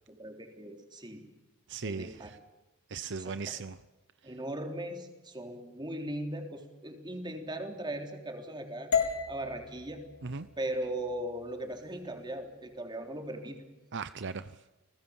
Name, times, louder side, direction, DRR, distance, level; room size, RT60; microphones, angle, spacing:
voice 1, 0.1-1.2 1.8-2.3 3.1-3.4 4.2-8.9 9.3-10.0 10.6-13.7, right 1 dB, 20° right, 4 dB, 3.6 m, -38 dB
voice 2, 1.7-2.4 2.9-3.8 4.2-4.3 10.2-10.5 13.9-14.6, right 4 dB, 55° right, 13 dB, 0.7 m, -38 dB
sound 1, 8.9-13.0, left 6 dB, 85° left, 4.3 m, -36 dB
30.0 x 20.0 x 7.2 m, 1.1 s
head